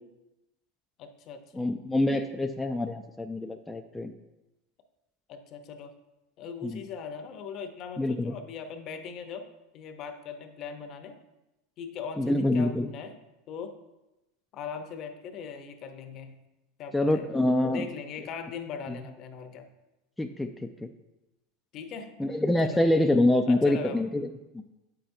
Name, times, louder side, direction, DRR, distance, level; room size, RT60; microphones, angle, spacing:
voice 1, 1.0-1.7 5.3-5.9 6.4-9.5 9.7-11.2 11.8-13.2 13.5-13.8 14.5-16.3 16.8-17.3 17.7-19.7 21.7-22.1 22.6-22.8 23.5-24.0, left 6 dB, 45° left, 7 dB, 0.8 m, -40 dB
voice 2, 1.5-4.1 6.6-6.8 8.0-8.4 12.2-12.9 16.9-17.9 18.9-19.0 20.2-20.9 22.2-24.3 24.5-24.6, left 1 dB, 5° left, 4 dB, 0.4 m, -26 dB
7.6 x 5.8 x 2.7 m, 0.98 s
hypercardioid pair, 110°, 0 cm